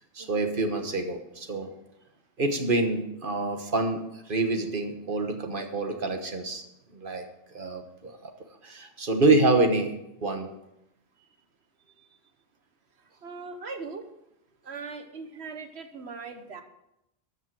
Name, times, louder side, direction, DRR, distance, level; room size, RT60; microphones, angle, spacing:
voice 1, 0.1-1.7 2.4-4.0 4.3-6.6 6.9-7.2 7.5-8.3 8.6-9.9 10.2-10.5, right 2 dB, 55° right, 5 dB, 1.6 m, -26 dB
voice 2, 13.2-14.0 14.6-16.6, right 4 dB, 75° right, 7 dB, 1.5 m, -39 dB
13.0 x 5.8 x 7.6 m, 0.85 s
omnidirectional pair, 1.1 m